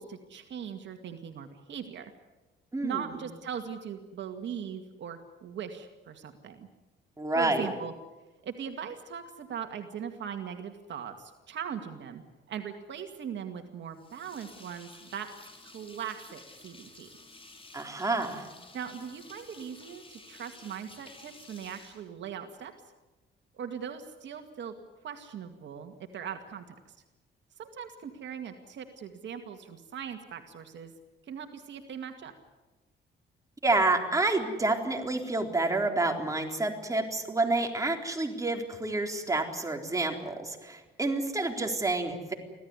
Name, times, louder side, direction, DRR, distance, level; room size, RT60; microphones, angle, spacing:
voice 1, 0.0-2.1 2.8-6.7 7.3-7.9 8.4-12.2 12.5-15.3 15.6-17.1 18.7-22.7 23.5-24.7 25.0-27.0 27.6-30.9 31.3-32.3, right 8 dB, 65° right, 6 dB, 2.1 m, -40 dB
voice 2, 2.7-3.0 7.2-7.7 17.7-18.5 33.6-42.3, right 2 dB, 15° right, 3 dB, 3.9 m, -29 dB
sound 1, 13.9-22.7, left 2 dB, 25° left, 5.8 m, -52 dB
25.0 x 16.5 x 9.7 m, 1.2 s
cardioid pair, 90°, 20 cm